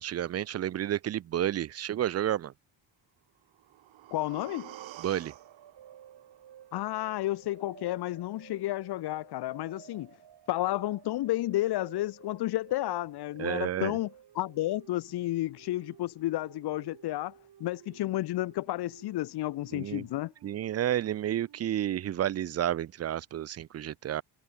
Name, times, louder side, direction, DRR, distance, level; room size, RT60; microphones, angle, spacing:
voice 1, 0.0-2.5 5.0-5.3 13.4-14.0 19.7-20.0 20.4-24.2, right 11 dB, 35° right, 0.4 m, -31 dB
sound 1, 3.4-7.4 7.7-7.8, right 15 dB, 75° right, 1.4 m, -50 dB
voice 2, 4.1-4.7 6.7-10.1 10.5-14.1 14.4-17.3 17.6-20.3, left 16 dB, 55° left, 0.6 m, -31 dB
sound 2, 4.6-22.0, right 10 dB, 55° right, 5.3 m, -54 dB
cardioid pair, 120°, 46 cm